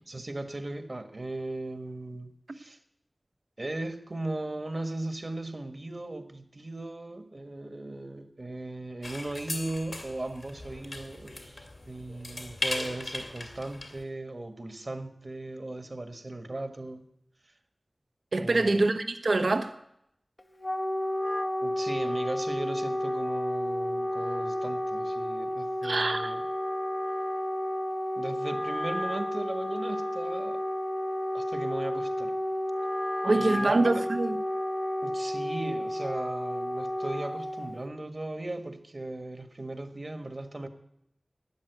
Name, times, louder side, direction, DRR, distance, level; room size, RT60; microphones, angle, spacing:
voice 1, 0.1-2.8 3.6-17.1 18.4-18.8 21.6-26.4 28.2-30.6 31.3-32.4 33.2-34.0 35.0-40.7, right 2 dB, 50° right, 1.4 m, -37 dB
sound 1, 9.0-14.0, left 2 dB, 60° left, 2.2 m, -38 dB
voice 2, 18.3-19.7 25.8-26.3 33.2-34.4, right 2 dB, 80° right, 1.0 m, -25 dB
Wind instrument woodwind instrument, 20.4-37.9, left 1 dB, 35° left, 0.8 m, -31 dB
13.0 x 9.5 x 8.0 m
wide cardioid pair, 50°, 0 cm